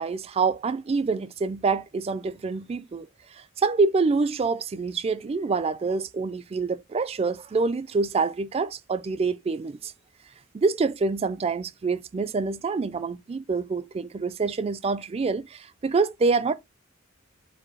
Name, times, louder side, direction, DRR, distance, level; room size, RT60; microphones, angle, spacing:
voice 1, 0.0-3.1 3.6-9.9 10.5-16.5, right 4 dB, 30° right, 0.3 m, -26 dB
4.7 x 2.2 x 4.7 m
head